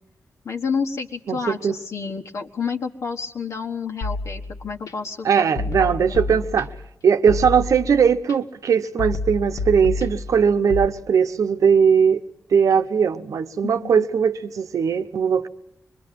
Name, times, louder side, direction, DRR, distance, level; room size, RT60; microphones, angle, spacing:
voice 1, 0.4-5.5 5.8-6.1 13.6-14.1, left 5 dB, 65° left, 1.4 m, -30 dB
voice 2, 1.3-1.8 5.2-6.7 7.0-12.2 12.5-15.5, right 6 dB, 80° right, 1.0 m, -19 dB
sound 1, 4.0-4.9 5.6-6.9 7.3-8.3 9.0-10.9, left 3 dB, 85° left, 2.1 m, -29 dB
25.5 x 22.5 x 7.7 m
wide cardioid pair, 170°, 6 cm